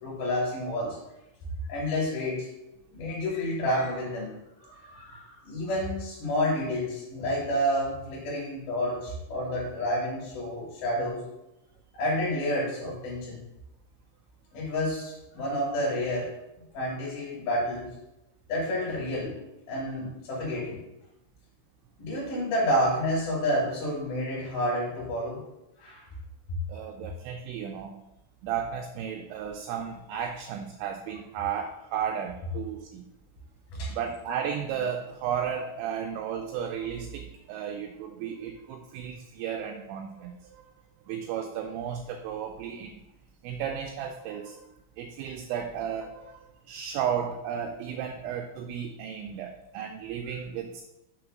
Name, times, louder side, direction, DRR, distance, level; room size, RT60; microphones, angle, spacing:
voice 1, 0.0-1.0 1.7-2.5 2.9-4.3 4.6-11.2 11.9-13.4 14.5-16.3 16.7-17.9 18.5-19.4 19.7-20.8 22.0-25.4 25.8-26.0 33.7-34.0, equal, 60° left, -4 dB, 3.1 m, -29 dB
voice 2, 26.7-27.9 28.4-33.1 33.9-40.4 41.1-43.0 43.4-44.6 45.0-46.4 46.7-50.8, right 8 dB, 85° right, 4 dB, 2.6 m, -34 dB
7.0 x 3.2 x 6.0 m, 0.92 s
omnidirectional pair, 5.7 m